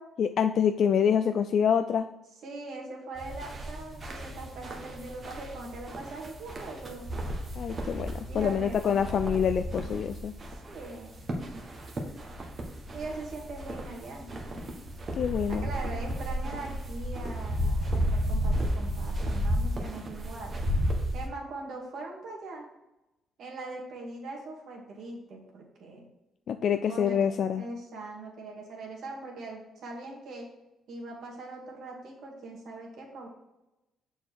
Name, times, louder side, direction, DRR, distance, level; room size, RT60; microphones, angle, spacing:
voice 1, 0.2-2.1 7.6-10.3 15.1-15.7 26.5-27.6, left 8 dB, 60° left, 9 dB, 0.3 m, -26 dB
voice 2, 2.4-7.0 8.3-9.0 10.5-11.1 12.9-14.3 15.5-20.6 21.1-22.7 23.4-26.0 26.9-27.3 27.6-30.5 30.9-33.3, right 2 dB, 70° right, 0 dB, 2.0 m, -41 dB
sound 1, 3.1-21.3, equal, 40° right, 1.5 m, -33 dB
6.7 x 4.4 x 4.7 m, 0.97 s
cardioid pair, 90°, 0 cm